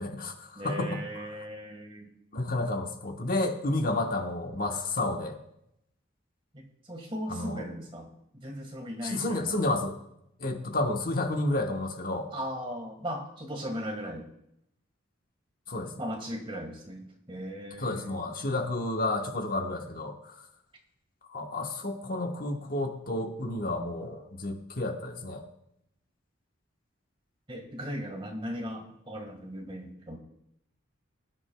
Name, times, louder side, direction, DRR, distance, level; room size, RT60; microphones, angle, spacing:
voice 1, 0.0-1.0 2.3-5.4 7.3-7.6 9.0-10.0 10.4-12.3 15.7-15.9 17.8-20.1 21.3-25.4, left 2 dB, 45° left, 3 dB, 1.2 m, -31 dB
voice 2, 0.5-2.1 6.5-9.6 12.3-14.3 16.0-18.2 27.5-30.2, equal, 25° right, 3 dB, 1.7 m, -38 dB
20.5 x 9.7 x 2.3 m, 0.80 s
head